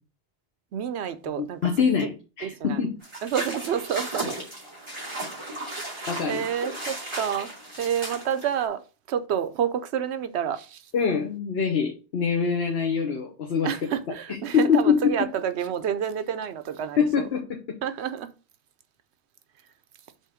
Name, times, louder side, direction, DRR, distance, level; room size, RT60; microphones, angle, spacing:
voice 1, 0.7-1.6 2.4-2.8 3.2-4.3 5.7-7.5 7.8-8.8 9.1-10.8 13.6-17.3 17.8-18.3, right 8 dB, 75° right, 0.9 m, -29 dB
voice 2, 1.4-2.9 6.1-6.4 10.9-13.7 14.3-15.1 17.0-17.8, left 6 dB, 65° left, 1.1 m, -24 dB
sound 1, 3.0-8.6, right 1 dB, 25° right, 2.7 m, -35 dB
5.5 x 3.7 x 4.9 m
omnidirectional pair, 1.1 m